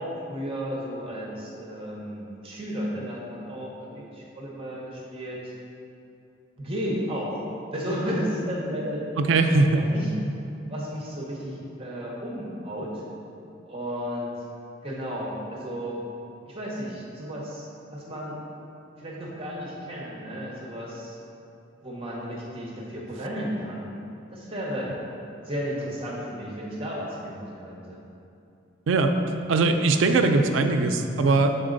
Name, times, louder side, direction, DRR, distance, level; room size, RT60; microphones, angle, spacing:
voice 1, 0.0-5.5 6.6-7.4 7.7-9.1 9.7-10.1 10.7-13.0 13.7-14.3 14.8-16.0 16.4-18.3 19.0-21.2 21.8-23.9 24.3-24.9 25.4-28.0, equal, 30° right, -4 dB, 0.9 m, -33 dB
voice 2, 9.2-9.8 28.9-29.1 29.5-31.5, right 3 dB, 75° right, 6 dB, 0.4 m, -20 dB
6.2 x 4.0 x 3.9 m, 2.7 s
head